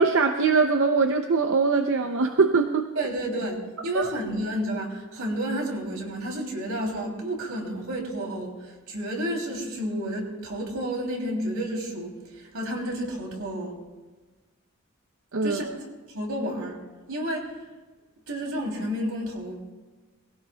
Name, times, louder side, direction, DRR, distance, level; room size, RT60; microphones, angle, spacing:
voice 1, 0.0-2.9 3.9-4.1 15.3-15.8, right 4 dB, 60° right, 6 dB, 0.6 m, -22 dB
voice 2, 2.9-3.6 3.8-13.8 15.4-15.7 16.1-16.8 17.1-17.5 18.3-19.6, equal, 85° right, 0 dB, 3.0 m, -31 dB
20.5 x 16.5 x 2.3 m, 1.3 s
head